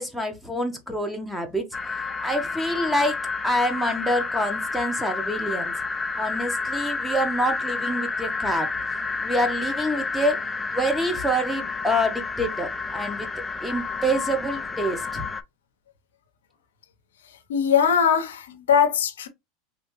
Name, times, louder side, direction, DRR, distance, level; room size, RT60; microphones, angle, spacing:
voice 1, 0.0-1.7 2.2-3.2 3.4-5.7 6.2-8.7 9.2-10.4 10.7-13.3 13.6-15.3, equal, ahead, 1.0 m, -26 dB
sound 1, 1.7-15.4, left 4 dB, 15° left, 0.4 m, -30 dB
voice 2, 17.5-19.3, left 7 dB, 90° left, 0.7 m, -21 dB
3.3 x 2.8 x 3.0 m
hypercardioid pair, 105°, 0 cm